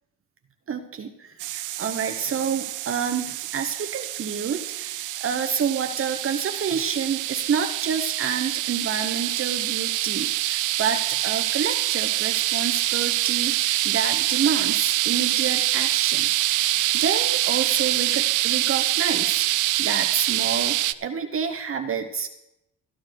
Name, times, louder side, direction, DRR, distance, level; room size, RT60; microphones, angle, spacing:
voice 1, 0.7-16.3 16.7-22.3, right 6 dB, 45° right, 6 dB, 1.1 m, -29 dB
sound 1, 1.4-20.9, right 16 dB, 80° right, 0.5 m, -25 dB
14.0 x 10.0 x 4.7 m, 0.86 s
cardioid pair, 90°, 30 cm